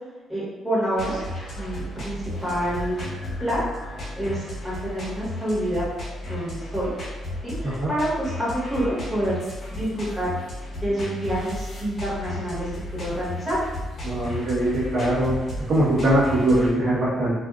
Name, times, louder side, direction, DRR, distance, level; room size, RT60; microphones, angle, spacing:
voice 1, 0.3-1.2 1.6-3.0 3.4-3.6 4.2-5.9 6.2-6.9 7.4-10.3 10.8-13.6, right 1 dB, 10° right, -8 dB, 1.3 m, -27 dB
sound 1, 0.9-16.7, left 1 dB, 45° left, 1.0 m, -34 dB
voice 2, 14.0-15.4 15.7-17.3, right 1 dB, 40° right, -10 dB, 1.1 m, -21 dB
2.6 x 2.4 x 2.4 m, 1.3 s
cardioid pair, 90°, 0 cm